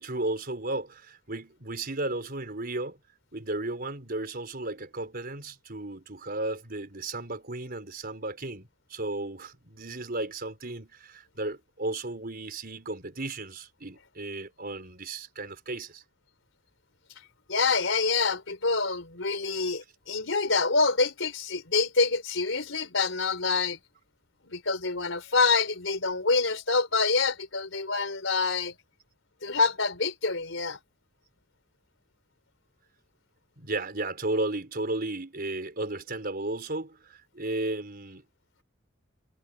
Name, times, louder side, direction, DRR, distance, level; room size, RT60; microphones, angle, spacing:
voice 1, 0.0-3.0 3.3-16.0 33.6-38.2, right 2 dB, 50° right, 4.6 m, -34 dB
voice 2, 17.5-23.8 24.4-28.7 29.4-30.8, left 4 dB, 75° left, 4.4 m, -26 dB
head